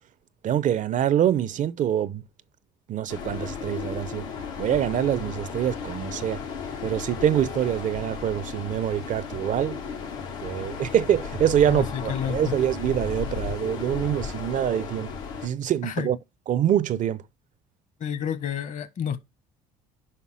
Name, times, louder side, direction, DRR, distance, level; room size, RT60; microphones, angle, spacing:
voice 1, 0.4-2.2 2.9-4.3 4.6-6.4 6.8-9.8 10.4-15.1 15.4-16.2 16.5-17.2, right 10 dB, 50° right, 0.6 m, -25 dB
sound 1, 3.1-15.5, left 6 dB, 90° left, 2.4 m, -35 dB
voice 2, 11.7-12.5 15.8-16.1 18.0-19.2, left 8 dB, 50° left, 1.4 m, -30 dB
5.7 x 5.4 x 6.2 m
hypercardioid pair, 65°, 17 cm